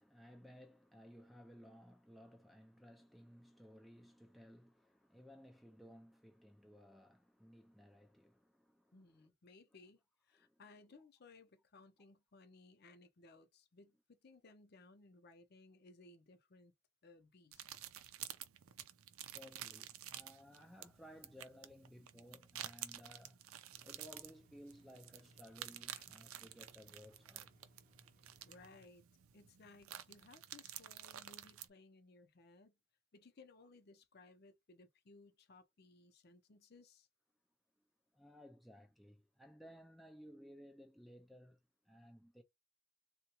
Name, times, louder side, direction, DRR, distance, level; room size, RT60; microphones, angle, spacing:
voice 1, 0.0-9.0 10.4-10.6 19.3-23.4 23.8-27.5 38.1-41.6 41.9-42.4, equal, ahead, 0.3 m, -59 dB
voice 2, 8.9-16.7 17.0-17.7 25.9-26.0 28.4-29.0 29.3-32.8 33.1-37.1, left 3 dB, 50° left, 0.6 m, -62 dB
sound 1, 17.5-31.7, right 12 dB, 90° right, 0.5 m, -51 dB
Engine, 23.7-28.9, equal, 40° right, 0.9 m, -68 dB
3.7 x 2.2 x 2.9 m
head